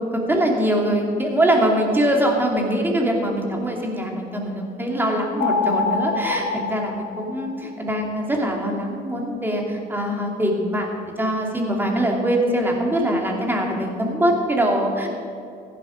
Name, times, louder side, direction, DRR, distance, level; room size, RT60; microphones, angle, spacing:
voice 1, 0.1-15.1, right 1 dB, 10° right, 0 dB, 2.7 m, -23 dB
sound 1, 5.4-7.9, left 4 dB, 65° left, 1.8 m, -25 dB
15.0 x 11.5 x 5.2 m, 2.4 s
cardioid pair, 110°, 17 cm